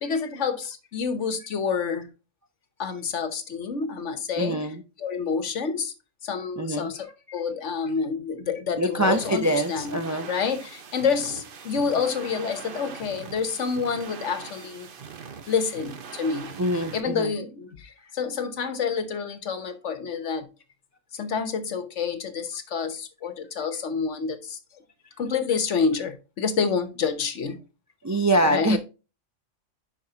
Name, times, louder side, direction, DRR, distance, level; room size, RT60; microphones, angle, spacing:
voice 1, 0.0-2.1 2.8-4.6 5.0-5.9 6.2-10.0 10.3-14.9 15.5-16.5 16.9-20.5 21.1-24.6 25.2-27.6 28.4-28.8, left 5 dB, 70° left, 1.3 m, -28 dB
voice 2, 4.4-4.8 6.6-6.9 8.8-10.3 16.6-17.4 28.0-28.8, right 1 dB, 25° right, 0.3 m, -24 dB
sound 1, 9.0-17.0, right 6 dB, 50° right, 0.9 m, -41 dB
10.5 x 4.7 x 2.8 m
omnidirectional pair, 1.3 m